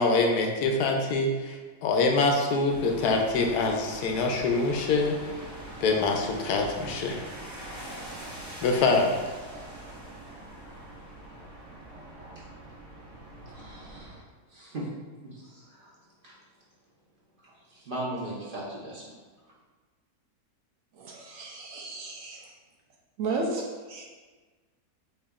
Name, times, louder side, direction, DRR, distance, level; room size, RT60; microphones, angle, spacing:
voice 1, 0.0-5.2 5.8-7.2 8.6-9.1, left 3 dB, 80° left, 2 dB, 1.1 m, -25 dB
sound 1, 2.7-14.2, right 1 dB, 20° right, 0.5 m, -43 dB
voice 2, 13.5-14.2 14.5-14.9 15.3-15.9 16.2-16.3 17.4-19.0, right 1 dB, 40° right, -6 dB, 1.0 m, -38 dB
voice 3, 20.9-22.5 23.2-24.0, right 3 dB, 70° right, 0 dB, 0.9 m, -34 dB
6.4 x 2.7 x 2.4 m, 1.3 s
omnidirectional pair, 1.6 m